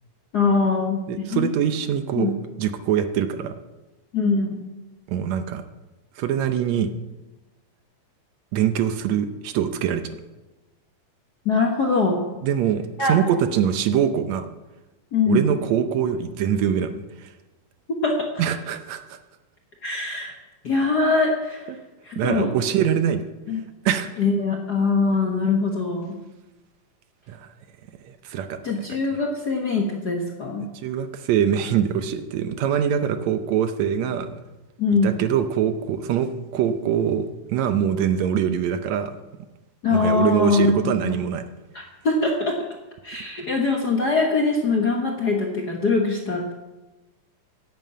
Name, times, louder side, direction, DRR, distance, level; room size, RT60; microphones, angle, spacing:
voice 1, 0.3-1.5 2.1-2.4 4.1-4.6 11.4-12.2 13.0-13.1 15.1-15.5 17.9-18.2 19.8-20.3 20.6-21.7 22.0-22.5 23.5-23.6 24.2-26.2 28.6-30.7 34.8-35.1 39.8-41.2 41.7-42.6 43.0-46.5, left 3 dB, 50° left, 1 dB, 1.3 m, -22 dB
voice 2, 1.1-2.3 2.6-3.5 5.1-5.6 6.2-6.9 8.5-10.0 12.4-14.5 15.3-17.3 18.4-19.2 21.7-21.8 22.2-23.2 23.9-24.2 27.3-27.5 28.0-28.6 28.9-29.0 30.6-34.4 35.0-39.1 39.9-41.4, right 9 dB, 75° right, 9 dB, 1.9 m, -23 dB
11.0 x 9.2 x 8.6 m, 1.1 s
omnidirectional pair, 3.5 m